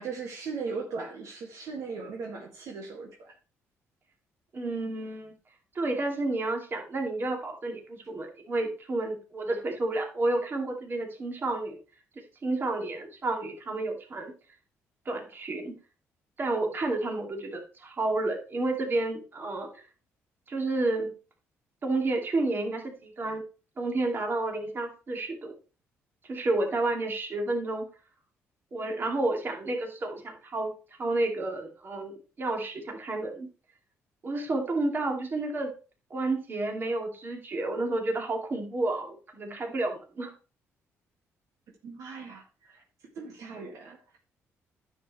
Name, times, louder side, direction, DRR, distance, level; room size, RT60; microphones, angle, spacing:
voice 1, 0.0-3.3 41.8-42.8 43.2-44.0, right 4 dB, 70° right, 1 dB, 2.0 m, -38 dB
voice 2, 4.5-5.3 5.7-11.8 12.4-14.3 15.1-15.7 16.4-19.8 20.5-21.1 21.8-23.4 23.8-25.5 26.3-27.8 28.7-30.7 31.0-33.5 34.2-35.7 36.1-40.3, right 2 dB, 40° right, 3 dB, 2.4 m, -30 dB
10.0 x 7.4 x 3.1 m, 0.34 s
cardioid pair, 85°, 6 cm